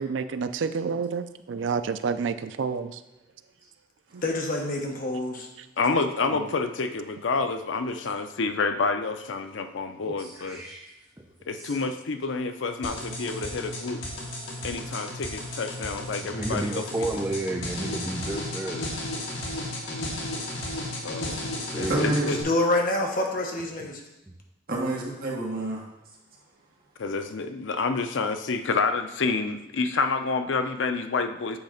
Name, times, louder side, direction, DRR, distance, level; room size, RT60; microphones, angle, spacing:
voice 1, 0.0-3.0 4.1-4.2, right 5 dB, 80° right, 0.4 m, -29 dB
voice 2, 4.2-5.5 22.2-24.0, left 2 dB, 50° left, 1.1 m, -27 dB
voice 3, 5.8-10.6 11.5-14.0 14.6-17.2 21.0-22.4 27.0-31.6, left 4 dB, 90° left, 0.6 m, -28 dB
voice 4, 10.1-10.9 11.5-11.8 14.3-14.4 16.2-18.8 21.7-22.4 24.3-24.4, right 2 dB, 15° right, 0.5 m, -32 dB
sound 1, 12.8-22.4, left 1 dB, 70° left, 1.6 m, -34 dB
voice 5, 19.8-21.3 21.9-22.3 24.7-25.8, right 1 dB, 55° right, 1.6 m, -31 dB
8.0 x 3.2 x 5.1 m
head